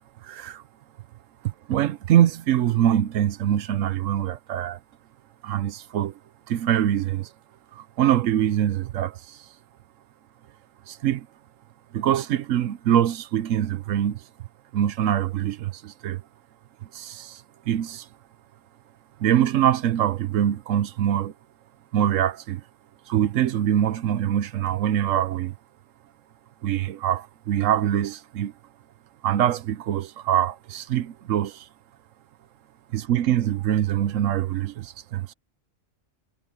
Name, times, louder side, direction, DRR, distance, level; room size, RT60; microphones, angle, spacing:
voice 1, 0.2-0.6 1.4-4.8 5.4-6.1 6.5-7.3 7.7-9.4 10.9-11.3 11.9-14.2 14.7-16.2 16.9-18.1 19.2-21.3 21.9-22.6 23.1-25.5 26.6-28.5 29.2-31.7 32.9-35.3, right 11 dB, 85° right, 1.1 m, -24 dB
omnidirectional pair, 1.3 m